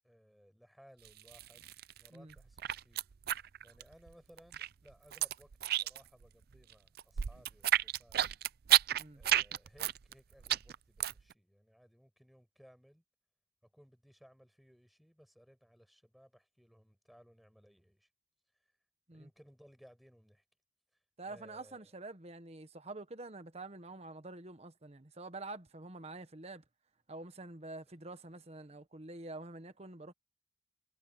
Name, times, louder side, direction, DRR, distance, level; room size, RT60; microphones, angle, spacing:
voice 1, 0.0-1.7 2.0-3.0 3.6-8.3 9.1-13.0 13.6-18.1 19.1-20.4 21.3-21.9, equal, ahead, 5.5 m, -62 dB
sound 1, 1.1-2.1 2.3-4.1 4.4-6.2 6.5-11.3, right 12 dB, 60° right, 0.4 m, -31 dB
voice 2, 21.2-26.6 27.1-30.1, right 2 dB, 35° right, 1.3 m, -47 dB
head